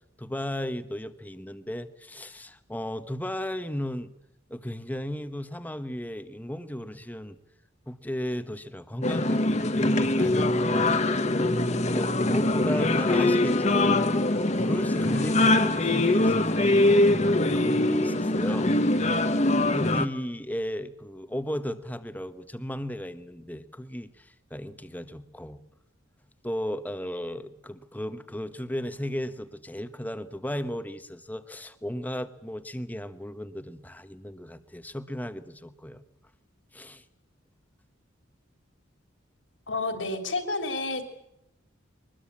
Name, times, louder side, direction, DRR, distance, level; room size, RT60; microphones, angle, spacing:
voice 1, 0.2-4.1 4.5-7.4 7.9-11.0 11.5-14.0 14.6-18.7 19.7-25.6 26.4-36.0 36.7-37.0, left 1 dB, 10° left, 10 dB, 1.2 m, -35 dB
sound 1, 9.0-20.1, left 2 dB, 35° left, 1.2 m, -23 dB
voice 2, 39.7-41.1, left 2 dB, 65° left, 7 dB, 3.4 m, -30 dB
23.5 x 20.5 x 8.6 m, 0.81 s
head